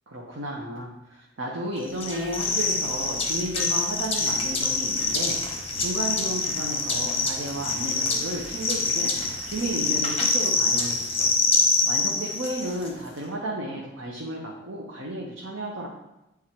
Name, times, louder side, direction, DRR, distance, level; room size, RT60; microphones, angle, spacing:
voice 1, 0.1-9.1 9.4-11.3 11.9-15.9, right 1 dB, 70° right, -1 dB, 0.9 m, -33 dB
sound 1, 2.0-12.9, left 3 dB, 30° left, 1.1 m, -25 dB
8.9 x 3.6 x 4.4 m, 0.94 s
head